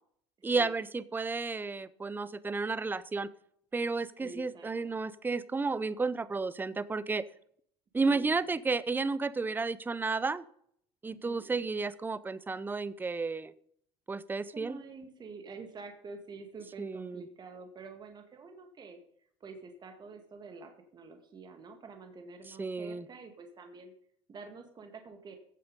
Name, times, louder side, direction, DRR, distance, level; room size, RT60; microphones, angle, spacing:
voice 1, 0.4-3.3 3.7-7.2 7.9-10.4 11.0-13.5 14.1-14.8 16.8-17.2 22.6-23.1, right 4 dB, 15° right, 18 dB, 0.6 m, -32 dB
voice 2, 4.2-4.9 8.1-8.6 11.1-11.6 14.5-19.0 19.4-23.9 24.3-25.3, right 4 dB, 35° right, 5 dB, 2.0 m, -48 dB
15.0 x 7.2 x 5.4 m, 0.66 s
supercardioid pair, 100°, 13 cm